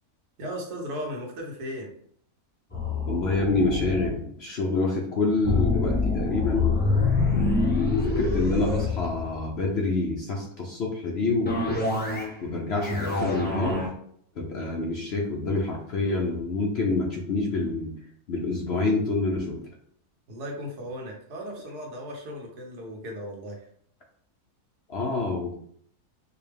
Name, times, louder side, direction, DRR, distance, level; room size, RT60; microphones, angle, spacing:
voice 1, 0.4-1.9 20.3-23.7, equal, 85° right, -1 dB, 1.5 m, -36 dB
sound 1, 2.7-4.1 5.4-9.7 11.4-12.4 12.7-13.9, left 3 dB, 10° left, 0.4 m, -26 dB
voice 2, 3.1-6.7 7.3-11.8 12.4-13.9 14.4-17.9 18.3-19.7 24.9-25.5, left 3 dB, 60° left, -1 dB, 0.7 m, -27 dB
4.7 x 2.2 x 3.3 m, 0.64 s
omnidirectional pair, 1.7 m